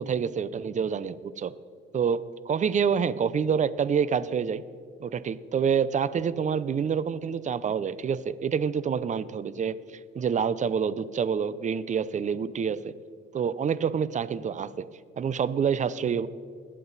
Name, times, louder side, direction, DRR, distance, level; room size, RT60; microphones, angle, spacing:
voice 1, 0.0-1.5 1.9-4.6 5.0-12.9 13.3-14.9 15.2-16.3, right 7 dB, 40° right, 16 dB, 0.6 m, -27 dB
21.0 x 7.7 x 4.1 m, 2.2 s
cardioid pair, 90°, 20 cm